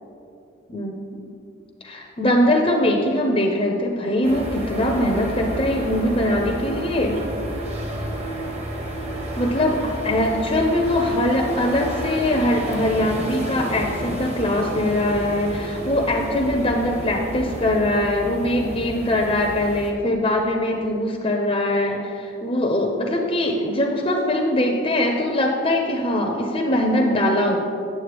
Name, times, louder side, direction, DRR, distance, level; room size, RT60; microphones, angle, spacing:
voice 1, 0.7-1.2 1.8-7.2 9.4-27.6, left 1 dB, 30° left, 1 dB, 0.5 m, -22 dB
sound 1, 4.2-19.9, right 1 dB, 35° right, 1.0 m, -31 dB
9.5 x 7.3 x 3.4 m, 2.6 s
head